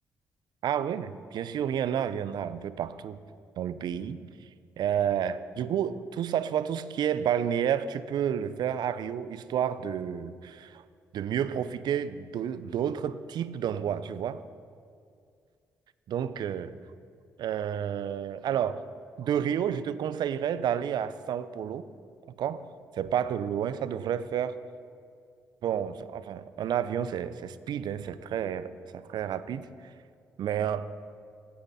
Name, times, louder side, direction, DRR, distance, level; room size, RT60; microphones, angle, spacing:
voice 1, 0.6-3.2 3.6-4.2 4.8-10.8 11.1-14.4 16.1-16.7 17.4-18.8 19.2-21.9 22.4-22.6 23.0-24.6 25.6-29.6 30.4-30.9, right 9 dB, 65° right, 14 dB, 0.7 m, -30 dB
26.0 x 8.6 x 4.3 m, 2.3 s
hypercardioid pair, 45°, 8 cm